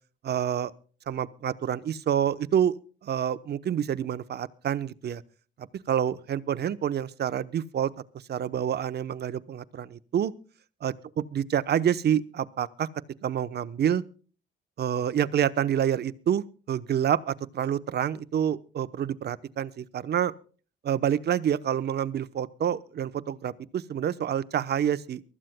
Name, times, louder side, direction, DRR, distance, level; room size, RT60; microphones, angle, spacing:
voice 1, 0.2-0.7 1.1-2.8 3.0-5.2 5.9-7.9 8.3-10.3 10.8-12.9 13.2-14.0 14.8-20.3 20.8-25.2, right 9 dB, 55° right, 0.9 m, -27 dB
23.5 x 13.5 x 2.2 m
cardioid pair, 90°, 20 cm